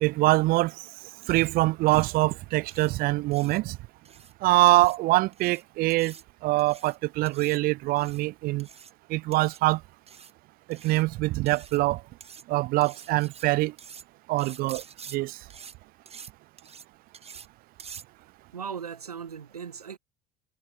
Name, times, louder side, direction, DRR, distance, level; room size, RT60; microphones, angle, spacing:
voice 1, 0.0-0.8 1.3-3.8 4.4-6.1 6.4-8.7 9.1-9.8 10.7-12.0 12.5-13.7 14.3-14.8 15.1-15.4, right 20 dB, 50° right, 0.6 m, -24 dB
sound 1, 1.2-1.5 1.9-2.1 2.7-2.9 3.3-3.6 4.0-4.3 4.7-5.0 5.3-5.6 5.9-6.2 6.6-7.0 7.3-7.6 8.0-8.2 8.6-8.9 9.3-9.6 10.1-10.3 10.7-11.0 11.5-11.8 12.2-12.4 12.8-13.4 13.8-14.0 14.4-15.2 15.5-15.7 16.1-16.3 16.6-16.9 17.1-17.5 17.8-18.0, right 6 dB, 30° right, 4.5 m, -47 dB
voice 2, 18.5-20.0, right 7 dB, 80° right, 3.0 m, -38 dB
figure-of-eight pair, 55°, 19 cm